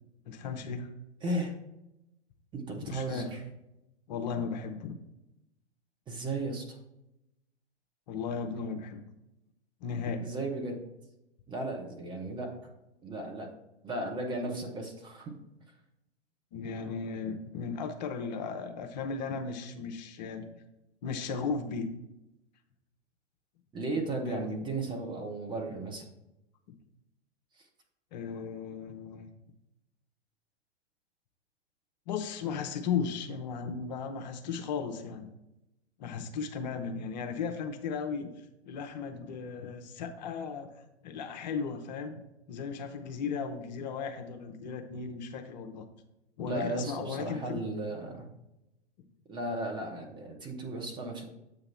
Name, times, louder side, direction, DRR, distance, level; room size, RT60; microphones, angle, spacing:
voice 1, 0.3-0.9 2.9-3.3 4.1-5.0 8.1-9.0 9.8-10.3 16.5-20.5 21.0-21.9 24.3-24.5 26.7-26.8 28.1-29.3 32.1-35.3 36.0-38.3 38.7-42.2 42.5-45.9 46.4-47.6, left 5 dB, 40° left, 5 dB, 0.7 m, -36 dB
voice 2, 1.2-1.5 2.5-3.4 6.1-6.8 10.2-10.8 11.5-12.5 13.0-13.5 13.8-15.3 23.7-26.1 27.6-27.7 46.5-48.3 49.3-51.2, right 2 dB, 15° right, 1 dB, 0.7 m, -35 dB
7.5 x 2.9 x 5.6 m, 0.90 s
figure-of-eight pair, 110°, 34 cm